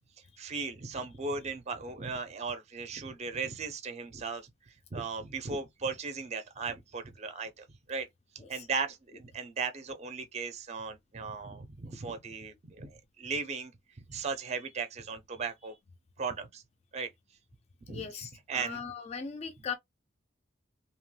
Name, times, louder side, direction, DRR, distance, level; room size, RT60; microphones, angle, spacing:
voice 1, 0.4-8.1 8.3-15.8 16.2-16.6 16.9-17.1 17.9-18.8, right 4 dB, 35° right, 0.5 m, -37 dB
voice 2, 17.9-19.8, left 6 dB, 35° left, 0.4 m, -39 dB
2.8 x 2.0 x 3.1 m
head